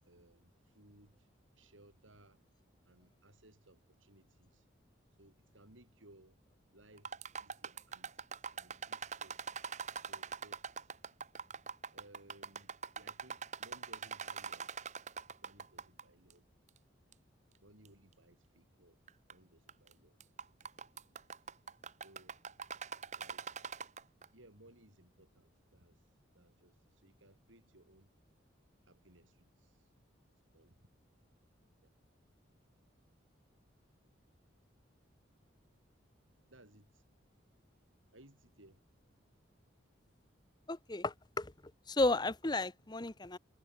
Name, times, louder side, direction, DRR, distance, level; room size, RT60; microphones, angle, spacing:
voice 1, 0.0-1.3 1.5-2.4 2.8-4.7 5.2-6.4 6.7-7.1 7.4-8.2 8.5-9.5 10.0-11.0 11.9-14.7 15.4-16.5 17.6-19.0 19.3-20.2 20.9-21.2 22.0-22.5 23.2-23.5 24.3-28.1 28.9-29.9 30.5-30.9 31.8-31.9 36.5-37.1 38.1-38.8, right 1 dB, 80° right, 7.5 m, -63 dB
sound 1, 7.0-16.0 16.3-16.4 17.1-17.2 17.8-17.9 19.1-19.3 19.7-19.9 20.2-24.2, right 6 dB, 35° right, 1.2 m, -43 dB
voice 2, 40.7-41.5 41.9-43.4, left 2 dB, 20° left, 0.8 m, -33 dB
head